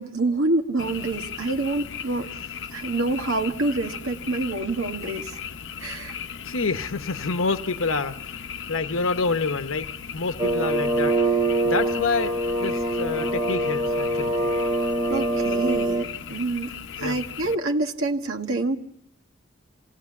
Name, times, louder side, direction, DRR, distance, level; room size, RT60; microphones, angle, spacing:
voice 1, 0.0-2.3 2.7-5.4 5.8-6.2 15.1-16.7 17.0-18.8, right 2 dB, 85° right, 3 dB, 1.6 m, -27 dB
Frog, 0.8-17.5, left 7 dB, 65° left, 0.7 m, -37 dB
voice 2, 6.4-8.4 8.7-12.3 12.6-14.4 17.0-17.2, left 4 dB, 90° left, 8 dB, 1.0 m, -28 dB
sound 1, 10.4-16.1, right 1 dB, 20° right, 0.8 m, -24 dB
27.0 x 18.0 x 7.1 m, 0.81 s
head